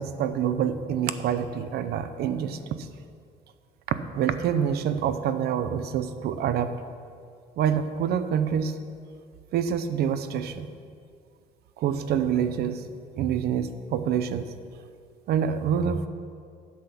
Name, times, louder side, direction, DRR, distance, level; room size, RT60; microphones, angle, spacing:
voice 1, 0.0-2.9 4.1-6.7 7.6-8.8 9.5-10.7 11.8-12.8 13.2-14.5 15.3-16.1, right 8 dB, 70° right, 11 dB, 0.8 m, -26 dB
11.5 x 7.5 x 5.9 m, 2.2 s
cardioid pair, 110°, 17 cm